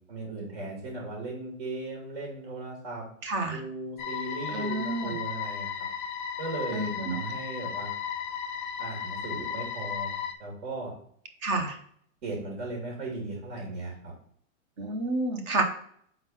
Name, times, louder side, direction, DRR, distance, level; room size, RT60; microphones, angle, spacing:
voice 1, 0.1-3.1 3.5-5.9 6.4-7.9 8.8-10.1 10.4-10.9 12.2-14.1, right 2 dB, 55° right, -2 dB, 2.4 m, -37 dB
voice 2, 3.2-3.6 4.5-5.2 6.7-7.2 11.4-11.8 14.8-15.6, right 2 dB, 25° right, 5 dB, 0.5 m, -29 dB
sound 1, 4.0-10.4, left 7 dB, 40° left, 0.5 m, -35 dB
4.4 x 3.9 x 5.5 m, 0.63 s
hypercardioid pair, 160°, 41 cm